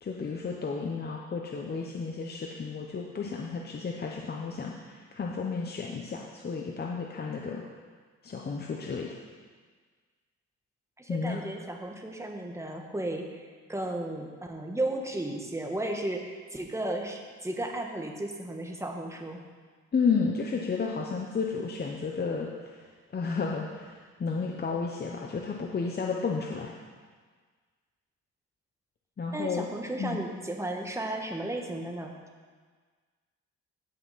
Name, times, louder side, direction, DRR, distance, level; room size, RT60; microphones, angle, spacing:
voice 1, 0.0-7.6 8.2-9.1 11.1-11.4 19.9-22.8 23.1-26.7 29.2-29.7 30.0-30.2, left 5 dB, 35° left, 0 dB, 0.9 m, -32 dB
voice 2, 11.0-13.4 13.7-19.4 29.3-32.1, right 1 dB, 10° right, 2 dB, 1.4 m, -34 dB
16.0 x 5.8 x 4.2 m, 1.5 s
cardioid pair, 90°, 30 cm